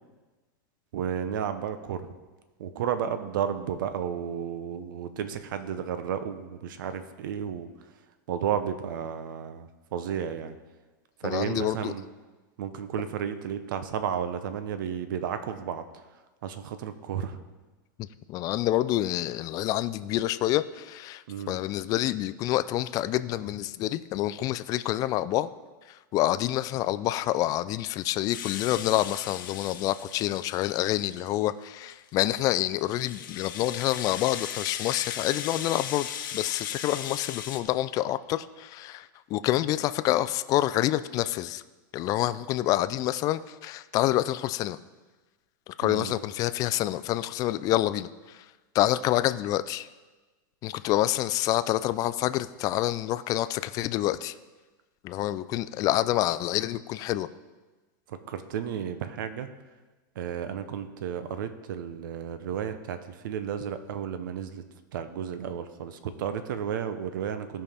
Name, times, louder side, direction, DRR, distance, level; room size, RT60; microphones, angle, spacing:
voice 1, 0.9-2.1 2.6-7.7 8.3-10.5 11.2-12.0 12.6-16.0 16.4-17.4 21.3-21.6 45.8-46.1 58.1-59.5 60.1-64.6 64.9-67.6, right 8 dB, 75° right, 10 dB, 0.8 m, -32 dB
voice 2, 11.2-11.9 18.3-25.5 25.9-41.6 41.9-44.8 45.7-48.4 48.7-49.9 50.6-54.3 55.0-57.3, left 14 dB, 35° left, 14 dB, 0.4 m, -27 dB
Rattle (instrument), 28.3-31.4 31.9-37.6, left 9 dB, 75° left, 0.9 m, -38 dB
16.0 x 5.6 x 3.5 m, 1.2 s
supercardioid pair, 140°, 11 cm